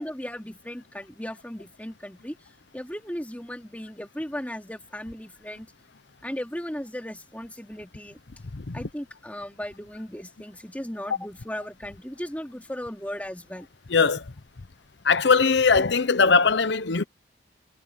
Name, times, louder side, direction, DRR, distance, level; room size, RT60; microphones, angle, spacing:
voice 1, 0.0-2.4 2.7-5.7 6.2-8.2 8.7-13.7, equal, 10° left, 2.7 m, -36 dB
voice 2, 13.9-14.2 15.0-17.0, left 5 dB, 65° left, 0.8 m, -20 dB
head